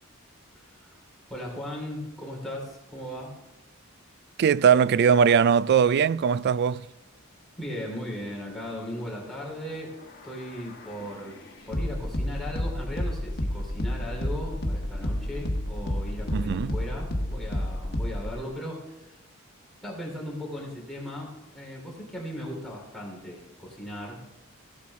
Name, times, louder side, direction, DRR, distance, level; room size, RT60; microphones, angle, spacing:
voice 1, 0.5-0.9 1.3-3.4 7.6-9.9 10.2-11.4 11.6-19.2 19.8-24.2, equal, ahead, 3.3 m, -37 dB
voice 2, 4.4-6.9 16.3-16.7, right 7 dB, 50° right, 0.3 m, -20 dB
sound 1, 9.7-18.3, left 1 dB, 50° left, 1.3 m, -31 dB
16.5 x 8.4 x 3.6 m
head